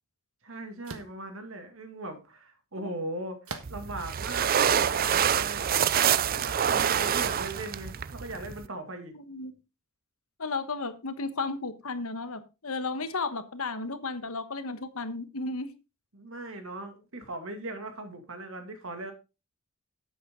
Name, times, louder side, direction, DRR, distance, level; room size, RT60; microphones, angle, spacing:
voice 1, 0.4-3.4 3.7-9.2 16.1-19.1, right 2 dB, 65° right, 7 dB, 2.4 m, -39 dB
sound 1, 0.8-1.2 3.4-4.0 4.7-4.8 6.7-7.1, right 4 dB, 90° right, 1.5 m, -40 dB
sound 2, 3.6-8.7, right 8 dB, 45° right, 0.5 m, -26 dB
voice 2, 9.1-9.5 10.4-15.7, left 3 dB, 80° left, 11 dB, 1.4 m, -34 dB
10.5 x 8.6 x 3.8 m, 0.29 s
head